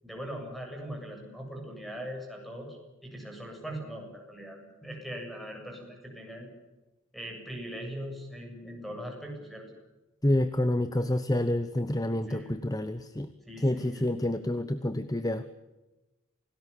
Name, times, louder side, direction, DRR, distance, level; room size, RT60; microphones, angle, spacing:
voice 1, 0.0-2.8 3.0-6.5 7.1-9.7 12.3-12.6 13.5-14.0, equal, ahead, 2 dB, 7.6 m, -40 dB
voice 2, 10.2-13.3 13.6-15.4, left 1 dB, 20° left, 12 dB, 0.9 m, -28 dB
27.5 x 19.0 x 8.5 m, 1.1 s
head